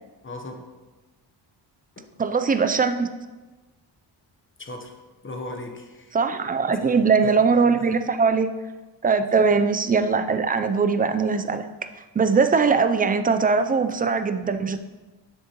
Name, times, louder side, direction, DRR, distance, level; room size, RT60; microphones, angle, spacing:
voice 1, 0.2-0.7 2.0-2.1 4.6-4.9 5.2-6.2 6.8-7.5 7.8-8.0 9.3-9.6, left 1 dB, 30° left, 4 dB, 0.9 m, -38 dB
voice 2, 2.2-3.1 6.1-8.5 9.0-11.6 12.2-14.8, right 5 dB, 20° right, 9 dB, 0.3 m, -21 dB
7.2 x 6.6 x 2.9 m, 1.2 s
cardioid pair, 105°, 43 cm